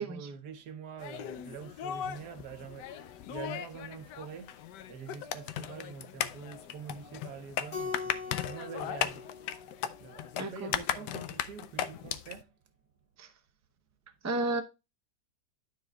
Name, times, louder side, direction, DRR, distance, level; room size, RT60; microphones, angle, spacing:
voice 1, 0.0-4.6 4.9-9.3 10.0-12.5, right 6 dB, 75° right, 1.4 m, -45 dB
sound 1, 1.0-12.4, left 10 dB, 85° left, 1.2 m, -37 dB
Keyboard (musical), 7.7-10.4, left 5 dB, 70° left, 2.3 m, -42 dB
voice 2, 10.4-10.7 13.2-13.3 14.2-14.6, right 2 dB, 25° right, 0.3 m, -32 dB
12.0 x 4.8 x 2.2 m
omnidirectional pair, 1.8 m